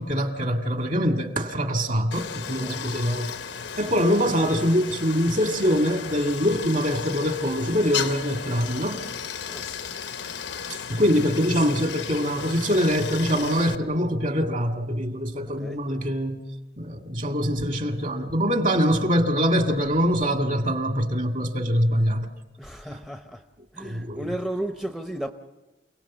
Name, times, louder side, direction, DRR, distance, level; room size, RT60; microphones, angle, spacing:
voice 1, 0.0-3.3 3.8-9.0 10.9-16.5 16.8-22.3 22.9-23.0 23.8-24.3, equal, 45° right, 2.0 m, -24 dB
Stream, 2.1-13.8, left 7 dB, 90° left, 1.0 m, -35 dB
voice 2, 2.4-2.9 9.5-9.7 15.4-15.9 22.6-23.4 23.7-25.3, right 1 dB, ahead, 0.7 m, -34 dB
28.0 x 18.0 x 7.3 m
head